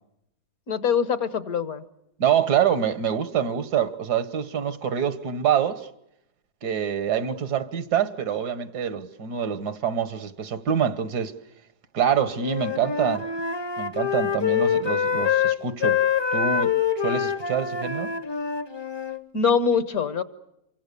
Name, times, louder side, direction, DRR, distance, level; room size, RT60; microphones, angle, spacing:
voice 1, 0.7-1.8 19.3-20.2, left 6 dB, 65° left, 1.7 m, -23 dB
voice 2, 2.2-5.9 6.6-11.3 11.9-13.3 13.8-16.0 16.3-16.7 17.0-18.1, right 8 dB, 80° right, 1.9 m, -25 dB
Wind instrument woodwind instrument, 12.4-19.2, left 7 dB, 20° left, 0.7 m, -25 dB
28.0 x 24.5 x 6.9 m
omnidirectional pair, 1.7 m